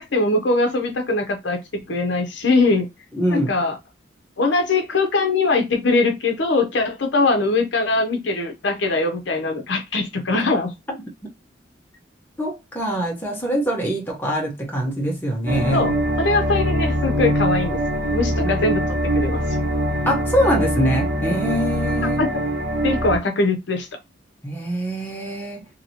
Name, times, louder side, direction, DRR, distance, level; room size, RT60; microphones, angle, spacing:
voice 1, 0.0-1.6 1.9-2.9 3.3-3.8 4.4-10.7 15.7-17.8 18.1-18.8 19.1-19.4 22.2-22.3 22.8-23.9, left 3 dB, 65° left, 0.6 m, -21 dB
voice 2, 3.1-3.5 12.4-15.9 20.1-22.2 24.4-25.6, equal, 10° left, 0.8 m, -23 dB
sound 1, 15.5-23.2, equal, 60° right, 1.3 m, -23 dB
2.8 x 2.7 x 2.8 m
head